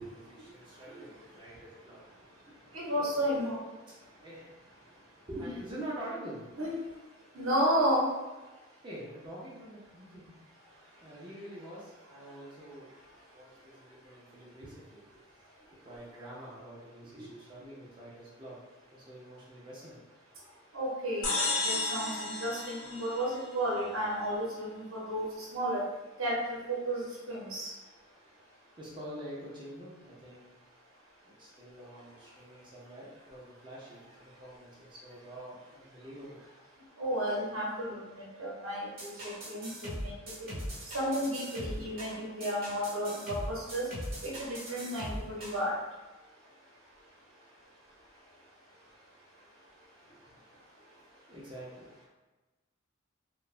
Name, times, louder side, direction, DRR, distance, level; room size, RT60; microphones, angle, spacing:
voice 1, 0.0-3.4 3.9-6.6 8.8-10.2 11.0-12.9 13.3-15.2 15.8-18.6 18.9-20.0 28.8-30.5 31.2-36.4 51.3-51.9, right 1 dB, 25° right, -7 dB, 0.6 m, -46 dB
voice 2, 2.7-3.6 6.6-6.7 7.4-8.1 17.2-17.3 20.7-25.3 25.5-25.8 26.2-27.7 37.0-38.0 38.4-40.1 40.9-43.8 44.2-45.7, equal, 80° right, -5 dB, 0.7 m, -32 dB
sound 1, 21.2-23.8, left 3 dB, 80° left, 0.7 m, -33 dB
sound 2, 39.0-45.6, equal, 50° right, 1.0 m, -40 dB
3.0 x 2.2 x 2.4 m, 1.2 s
head